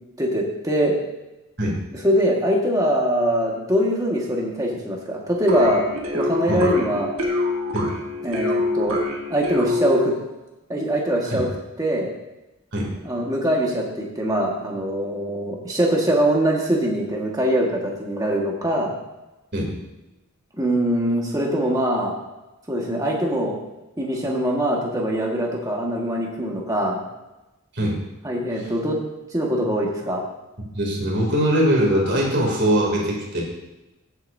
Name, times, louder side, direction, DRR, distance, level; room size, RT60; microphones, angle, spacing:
voice 1, 0.2-0.9 2.0-5.8 6.1-7.1 8.2-9.0 9.3-10.1 10.7-11.5 11.8-12.1 13.0-19.0 20.5-22.1 22.7-23.5 24.0-27.0 28.2-29.0 29.3-30.2, equal, 15° right, -2 dB, 1.7 m, -22 dB
sound 1, 5.5-10.3, left 2 dB, 70° right, 1.8 m, -25 dB
voice 2, 30.7-33.4, equal, 50° right, -2 dB, 2.9 m, -21 dB
15.5 x 8.1 x 2.7 m, 1.0 s
head